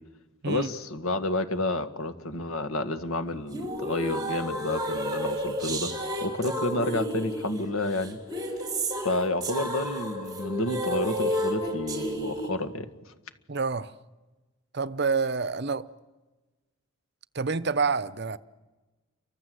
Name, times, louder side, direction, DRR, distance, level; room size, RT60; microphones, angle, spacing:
voice 1, 0.5-5.9 6.2-8.2 9.0-13.1, left 2 dB, 80° left, 1.9 m, -30 dB
sound 1, 3.5-12.5, equal, 20° right, 4.3 m, -31 dB
voice 2, 13.5-13.9 14.7-15.9 17.3-18.4, right 4 dB, 50° right, 0.8 m, -27 dB
29.5 x 24.5 x 7.9 m
head